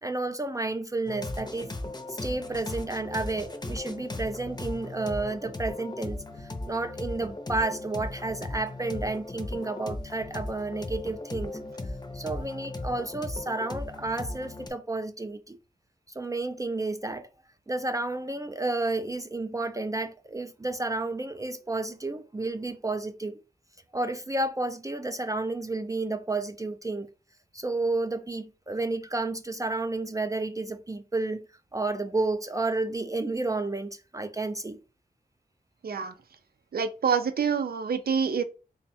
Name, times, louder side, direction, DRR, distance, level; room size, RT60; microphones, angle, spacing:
voice 1, 0.0-1.7 2.1-11.6 12.1-15.6 16.1-17.3 17.7-23.4 23.9-27.1 27.5-31.4 31.7-34.8, right 2 dB, 20° right, 0.3 m, -31 dB
sound 1, 1.1-14.7, left 2 dB, 25° left, 0.6 m, -37 dB
voice 2, 35.8-36.1 36.7-38.4, right 6 dB, 80° right, 0.5 m, -26 dB
3.4 x 2.1 x 4.1 m
wide cardioid pair, 60°, 16 cm